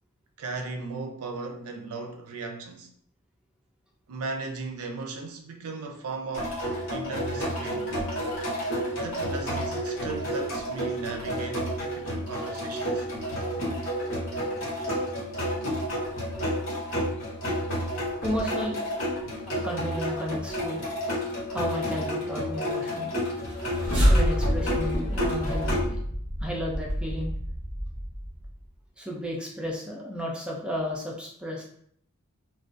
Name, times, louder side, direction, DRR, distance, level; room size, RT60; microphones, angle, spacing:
voice 1, 0.4-2.9 4.1-6.6 6.9-8.0 8.9-13.1, right 3 dB, 80° right, 0.4 m, -37 dB
sound 1, 6.3-25.8, equal, 60° left, 1.0 m, -30 dB
voice 2, 18.2-18.8 19.5-20.8 21.5-23.1 24.1-26.0 26.4-27.3 29.0-31.6, equal, 5° right, 0.4 m, -33 dB
sound 2, 23.3-28.6, equal, 25° right, 0.8 m, -27 dB
2.4 x 2.2 x 2.5 m
head